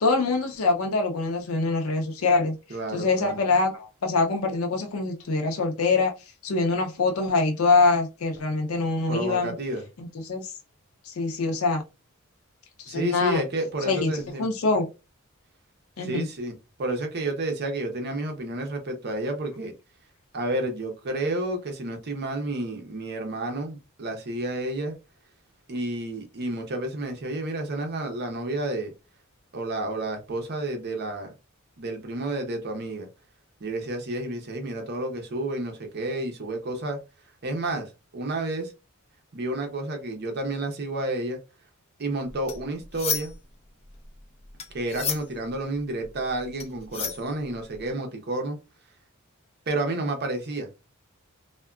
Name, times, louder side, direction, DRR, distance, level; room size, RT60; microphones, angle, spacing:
voice 1, 0.0-2.6 2.9-6.1 6.4-9.5 10.0-10.5 11.0-11.8 12.8-13.4 13.9-14.1 14.4-14.8 16.0-16.3, left 3 dB, 80° left, 0.5 m, -24 dB
voice 2, 2.7-3.3 9.1-9.8 12.9-14.5 16.0-19.7 20.3-24.9 25.7-28.9 29.5-31.3 31.8-33.1 33.6-37.0 37.4-38.7 39.3-41.4 42.0-43.3 44.7-48.6 49.7-50.7, right 2 dB, 50° right, 0.6 m, -30 dB
sound 1, 42.3-43.5 43.8-47.8, left 6 dB, 30° left, 0.5 m, -33 dB
3.4 x 2.1 x 2.3 m
head